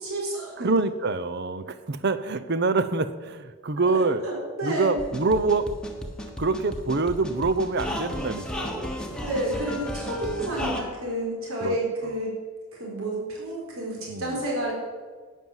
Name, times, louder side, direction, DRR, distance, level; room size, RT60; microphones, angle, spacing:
voice 1, 0.0-0.7 3.9-4.9 9.2-12.3 12.7-14.7, right 1 dB, 75° right, -3 dB, 4.0 m, -30 dB
voice 2, 0.6-4.2 4.6-5.7 6.4-9.2 11.6-11.8 14.1-14.4, right 3 dB, 50° right, 13 dB, 0.7 m, -26 dB
sound 1, 5.0-10.8, equal, 5° left, 1.3 m, -34 dB
12.0 x 9.3 x 7.3 m, 1.5 s
head